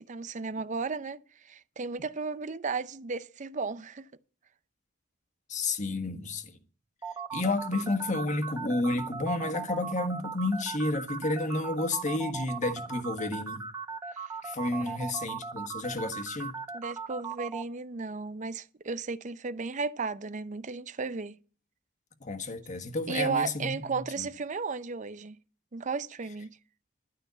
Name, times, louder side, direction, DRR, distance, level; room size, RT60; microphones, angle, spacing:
voice 1, 0.0-4.1 14.1-14.3 14.8-15.1 16.7-21.4 23.1-25.4 25.7-26.6, right 4 dB, 40° right, 0.6 m, -34 dB
voice 2, 5.5-6.6 7.3-13.7 14.4-16.5 22.2-23.8 24.2-24.3, left 2 dB, 40° left, 1.4 m, -31 dB
sound 1, 7.0-17.6, right 5 dB, 15° right, 1.2 m, -37 dB
12.5 x 5.5 x 8.1 m
head